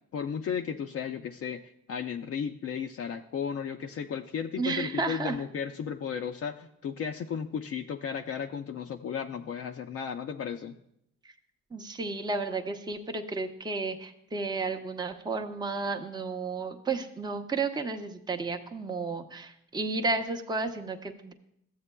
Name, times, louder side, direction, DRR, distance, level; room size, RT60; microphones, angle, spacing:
voice 1, 0.1-1.6 1.9-10.8, left 7 dB, 50° left, 4 dB, 0.5 m, -34 dB
voice 2, 4.6-5.4 11.7-21.3, right 3 dB, 15° right, 4 dB, 0.6 m, -32 dB
13.5 x 7.8 x 2.2 m, 0.75 s
cardioid pair, 90°, 30 cm